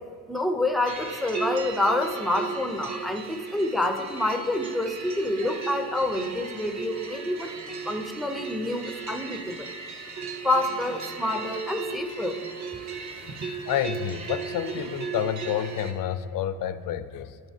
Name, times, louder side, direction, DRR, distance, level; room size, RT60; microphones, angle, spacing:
voice 1, 0.3-7.5 7.9-9.7 10.4-12.4, left 2 dB, ahead, 5 dB, 0.4 m, -27 dB
sound 1, 0.9-15.9, right 5 dB, 50° right, 1.0 m, -36 dB
voice 2, 13.7-17.4, left 10 dB, 65° left, 13 dB, 0.5 m, -29 dB
12.5 x 9.0 x 2.7 m, 2.3 s
cardioid pair, 145°, 35 cm